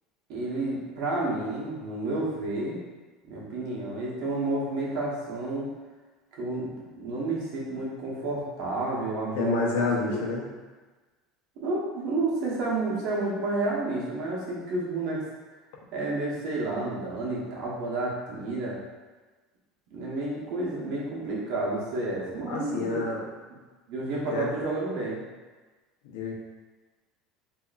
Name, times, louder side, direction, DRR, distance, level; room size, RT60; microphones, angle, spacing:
voice 1, 0.3-2.8 3.2-5.7 6.3-10.2 11.6-15.2 15.9-18.8 19.9-23.1 23.9-25.2, right 2 dB, 65° right, -4 dB, 1.0 m, -30 dB
voice 2, 9.3-10.5 22.5-23.3 24.3-24.5 26.0-26.3, left 3 dB, 85° left, -2 dB, 0.7 m, -29 dB
3.7 x 2.8 x 2.4 m, 1.3 s
supercardioid pair, 145°, 0 cm